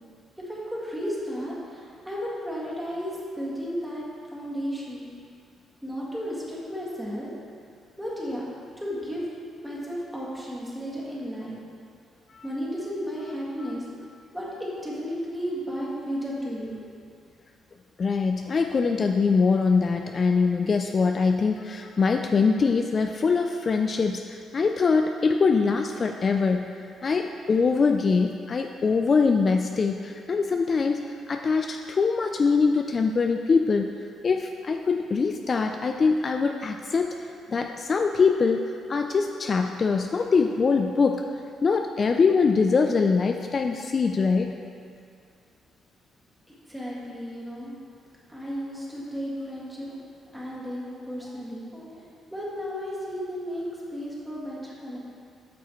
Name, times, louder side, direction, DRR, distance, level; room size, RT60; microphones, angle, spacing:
voice 1, 0.4-4.0 4.3-5.1 5.8-7.3 8.0-8.5 8.8-9.3 9.6-11.6 12.4-13.9 14.3-17.0 46.7-47.7 48.3-50.0 50.3-52.0 52.3-55.0, equal, 5° right, -6 dB, 1.9 m, -33 dB
voice 2, 18.0-26.7 27.0-33.9 34.2-38.6 38.9-41.2 41.6-44.6, left 4 dB, 40° left, 5 dB, 0.3 m, -23 dB
9.3 x 6.1 x 3.0 m, 2.3 s
cardioid pair, 90°, 0 cm